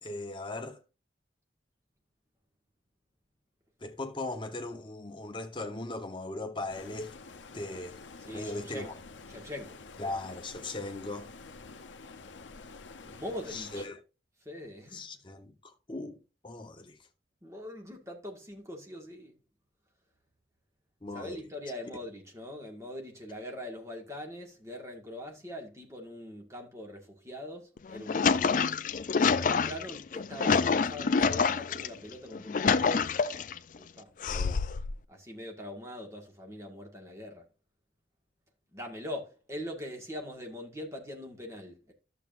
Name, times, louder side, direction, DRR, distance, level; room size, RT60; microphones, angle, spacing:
voice 1, 0.0-0.8 3.8-7.1 7.5-8.0 8.3-8.9 10.0-11.3 13.5-14.0 14.9-17.0 21.0-21.4 34.3-34.6, left 2 dB, 25° left, 1.0 m, -38 dB
Stream, 6.7-13.9, left 4 dB, 85° left, 0.7 m, -48 dB
voice 2, 8.2-8.9 9.3-9.8 13.0-13.8 14.4-15.0 17.4-19.3 21.1-28.7 29.1-33.0 33.8-34.3 35.1-37.4 38.7-41.9, left 1 dB, 15° right, 1.7 m, -42 dB
sound 1, 27.8-31.9 32.3-33.6 34.2-34.9, left 5 dB, 45° left, 0.4 m, -27 dB
11.5 x 7.1 x 2.5 m
head